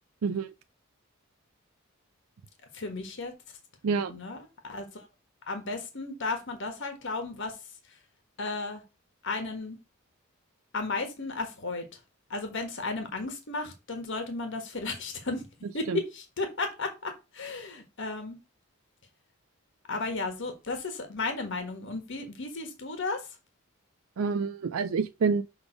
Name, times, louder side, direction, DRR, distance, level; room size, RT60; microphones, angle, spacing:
voice 1, 0.2-0.5 3.8-4.1 15.9-16.0 24.2-25.4, right 5 dB, 75° right, 0.4 m, -27 dB
voice 2, 2.7-3.3 4.1-5.1 5.5-7.6 7.9-8.0 8.4-8.8 9.2-9.8 10.7-12.0 12.3-15.4 15.7-18.4 19.9-23.3, left 3 dB, 60° left, 1.4 m, -34 dB
6.3 x 3.6 x 4.9 m
head